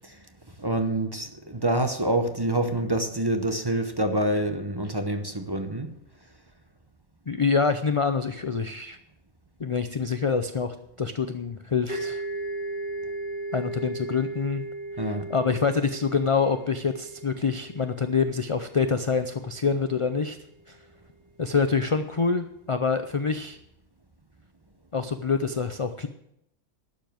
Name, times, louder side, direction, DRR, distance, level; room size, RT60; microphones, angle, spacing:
voice 1, 0.6-5.9 15.0-15.3, right 1 dB, 25° right, 7 dB, 0.8 m, -26 dB
voice 2, 7.3-9.0 9.6-12.2 13.5-14.6 15.1-20.4 20.7-20.8 21.4-23.6 24.9-26.1, left 5 dB, 40° left, 9 dB, 0.5 m, -26 dB
sound 1, 11.9-19.4, right 2 dB, 65° right, 5.1 m, -36 dB
12.0 x 7.4 x 7.7 m, 0.78 s
omnidirectional pair, 1.2 m